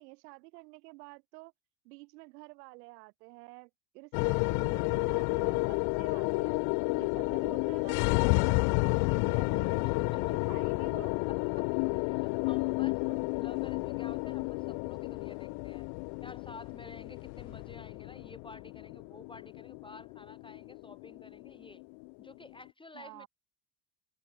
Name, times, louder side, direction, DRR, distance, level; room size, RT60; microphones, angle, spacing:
voice 1, 0.0-1.5 1.8-6.6 6.9-11.1 22.9-23.3, right 26 dB, 80° right, 5.7 m, -51 dB
sound 1, 4.1-22.5, left 37 dB, 60° left, 0.5 m, -31 dB
voice 2, 11.9-15.9 16.2-21.8 22.2-23.3, left 2 dB, 10° left, 1.4 m, -51 dB
supercardioid pair, 130°, 47 cm